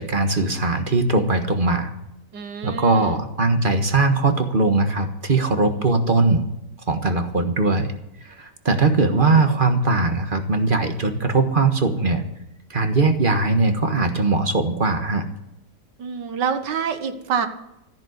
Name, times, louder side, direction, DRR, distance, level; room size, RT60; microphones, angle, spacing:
voice 1, 0.0-1.9 2.6-6.4 6.9-7.9 8.2-12.2 12.7-15.2, right 3 dB, 30° right, 7 dB, 1.4 m, -20 dB
voice 2, 2.3-3.2 9.4-9.5 16.0-17.5, right 6 dB, 80° right, 8 dB, 1.9 m, -27 dB
14.0 x 10.5 x 8.1 m, 0.84 s
omnidirectional pair, 1.9 m